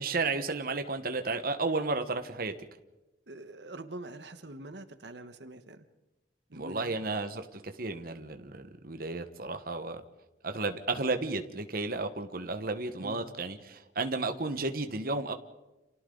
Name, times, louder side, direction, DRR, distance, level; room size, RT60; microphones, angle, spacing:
voice 1, 0.0-2.5 6.5-10.0 10.4-15.3, right 3 dB, 55° right, 7 dB, 1.3 m, -33 dB
voice 2, 3.3-5.8 6.5-7.0 13.0-13.3, right 2 dB, 70° right, 9 dB, 1.3 m, -45 dB
30.0 x 28.0 x 3.9 m, 1.0 s
head